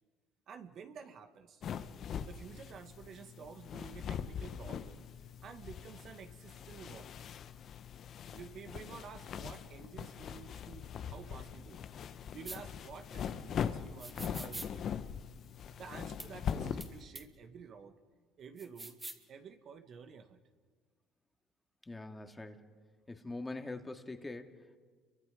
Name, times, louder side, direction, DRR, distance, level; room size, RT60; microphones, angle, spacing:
voice 1, 0.5-1.6 2.3-5.1 5.4-7.1 8.3-11.8 12.3-14.8 15.8-18.0 18.4-19.0 19.3-20.4, right 6 dB, 55° right, 6 dB, 1.9 m, -51 dB
sound 1, 1.6-17.0, left 8 dB, 55° left, 1.1 m, -42 dB
sound 2, 12.4-12.6 14.0-14.7 16.2-16.3 16.8-16.9 17.1-17.2 18.6-19.2, right 2 dB, 20° right, 2.4 m, -44 dB
voice 2, 21.9-22.7 23.1-24.8, left 2 dB, 15° left, 5 dB, 2.3 m, -43 dB
30.0 x 24.0 x 5.2 m, 1.5 s
supercardioid pair, 75°, 0 cm